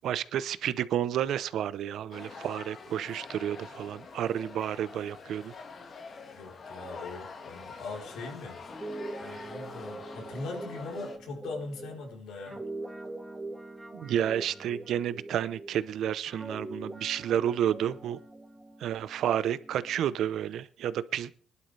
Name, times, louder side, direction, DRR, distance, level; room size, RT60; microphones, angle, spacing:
voice 1, 0.0-5.5 13.9-18.2 18.8-21.3, right 10 dB, 75° right, 16 dB, 0.7 m, -30 dB
sound 1, 2.1-11.2, left 4 dB, 50° left, 1.8 m, -46 dB
voice 2, 6.3-8.6 9.2-12.6 14.2-14.5, left 3 dB, 85° left, 1 dB, 3.9 m, -40 dB
Guitar, 8.6-15.8 16.3-20.0, right 2 dB, 10° right, 2.6 m, -43 dB
20.5 x 11.5 x 3.4 m, 0.42 s
cardioid pair, 90°, 0 cm